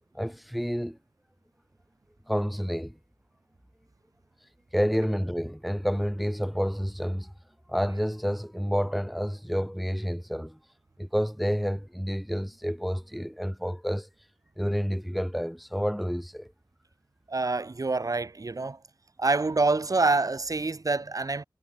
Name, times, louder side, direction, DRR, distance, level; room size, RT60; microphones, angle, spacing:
voice 1, 0.1-1.0 2.3-2.9 4.7-7.3 7.7-10.6 11.0-14.1 14.6-16.5, equal, ahead, 4.1 m, -29 dB
voice 2, 17.3-18.8 19.2-21.4, right 3 dB, 50° right, 2.0 m, -26 dB
wide cardioid pair, 65°, 8 cm